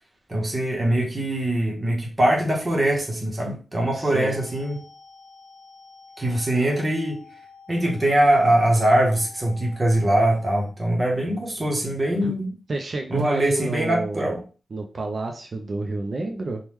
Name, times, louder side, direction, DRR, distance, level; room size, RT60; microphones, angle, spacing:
voice 1, 0.3-4.8 6.2-7.2 7.7-12.5 13.1-14.4, right 1 dB, 25° right, 0 dB, 0.8 m, -22 dB
voice 2, 3.9-4.3 12.2-12.4 12.7-14.3 14.7-16.6, right 2 dB, 45° right, 3 dB, 0.4 m, -29 dB
sound 1, 4.2-10.7, left 4 dB, 40° left, 0.6 m, -48 dB
3.0 x 2.1 x 3.4 m, 0.34 s
wide cardioid pair, 160°, 0 cm